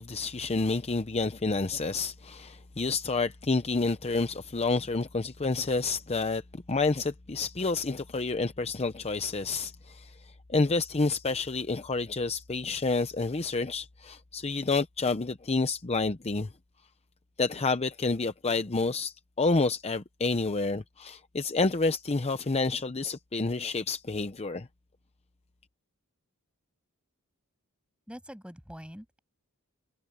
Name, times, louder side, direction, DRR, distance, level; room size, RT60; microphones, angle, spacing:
voice 1, 0.0-16.5 17.4-24.7, left 3 dB, 30° left, 0.7 m, -29 dB
voice 2, 28.1-29.2, equal, 5° right, 6.8 m, -44 dB
head